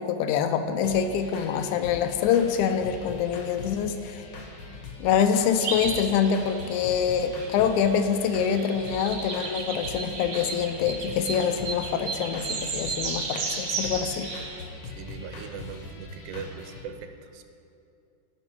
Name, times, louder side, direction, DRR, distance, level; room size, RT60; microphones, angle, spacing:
voice 1, 0.0-4.3 5.0-14.3, left 7 dB, 85° left, 8 dB, 1.9 m, -25 dB
sound 1, 0.8-16.8, left 3 dB, 65° left, 1.3 m, -42 dB
sound 2, 5.6-14.6, right 4 dB, 70° right, 0.9 m, -34 dB
voice 2, 15.0-17.4, right 6 dB, 85° right, 7 dB, 2.0 m, -40 dB
13.5 x 5.3 x 4.6 m, 2.5 s
omnidirectional pair, 3.4 m